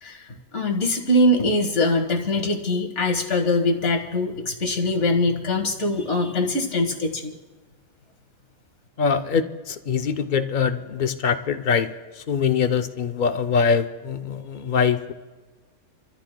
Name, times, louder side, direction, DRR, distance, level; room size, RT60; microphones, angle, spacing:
voice 1, 0.0-7.3, left 1 dB, 50° left, 3 dB, 1.8 m, -23 dB
voice 2, 9.0-15.1, left 6 dB, 70° left, 7 dB, 0.4 m, -23 dB
29.5 x 14.0 x 2.2 m, 1.3 s
omnidirectional pair, 1.6 m